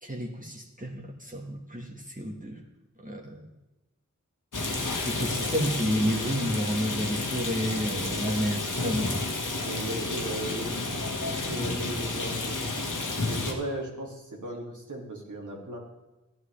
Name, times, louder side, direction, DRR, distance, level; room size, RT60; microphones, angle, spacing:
voice 1, 0.0-2.6 3.0-3.5 5.0-9.1, equal, 25° right, -1 dB, 1.5 m, -31 dB
Rain, 4.5-13.5, left 2 dB, 80° left, 1.5 m, -31 dB
voice 2, 9.5-12.8 13.3-15.8, right 1 dB, 80° right, -2 dB, 2.5 m, -37 dB
15.0 x 11.0 x 3.3 m, 1.0 s
wide cardioid pair, 60°, 30 cm